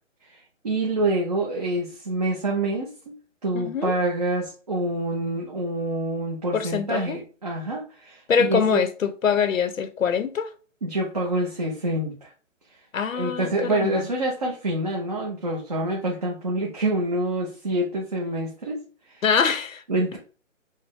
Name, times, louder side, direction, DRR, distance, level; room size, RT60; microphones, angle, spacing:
voice 1, 0.3-3.2 3.4-8.8 10.8-12.3 13.1-18.8 19.1-19.2 19.9-20.2, right 2 dB, 30° right, 0.6 m, -27 dB
voice 2, 3.5-3.9 6.5-7.2 8.3-10.5 12.9-14.1 19.2-19.8, left 6 dB, 85° left, 0.8 m, -24 dB
5.5 x 2.1 x 3.6 m
hypercardioid pair, 170°, 39 cm